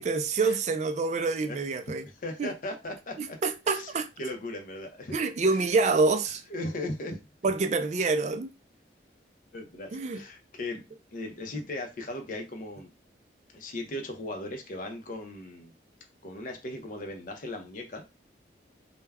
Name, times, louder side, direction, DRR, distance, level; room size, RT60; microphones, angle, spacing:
voice 1, 0.0-2.0 2.4-2.5 3.2-4.1 5.1-6.4 7.4-8.5 9.9-10.2, right 3 dB, 40° right, 0.3 m, -27 dB
voice 2, 2.2-3.4 3.7-3.9 4.2-5.1 6.5-7.2 9.5-10.8 11.1-12.9 13.5-15.7 16.2-18.0, left 1 dB, 50° left, 0.5 m, -37 dB
2.2 x 2.1 x 3.4 m
head